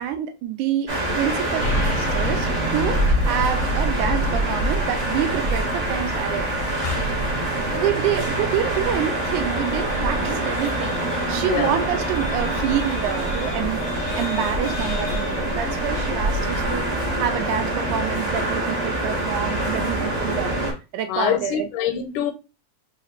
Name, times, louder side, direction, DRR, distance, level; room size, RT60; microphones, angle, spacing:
voice 1, 0.0-6.5 7.5-11.0 11.3-16.8 17.2-20.7 20.9-21.7, right 9 dB, 80° right, 1.9 m, -27 dB
sound 1, 0.9-20.7, right 1 dB, 30° right, 1.1 m, -25 dB
sound 2, 1.6-15.9, equal, 50° left, 0.9 m, -32 dB
voice 2, 11.5-11.8 21.1-22.3, left 9 dB, 85° left, 2.0 m, -25 dB
4.9 x 2.5 x 3.0 m
omnidirectional pair, 3.6 m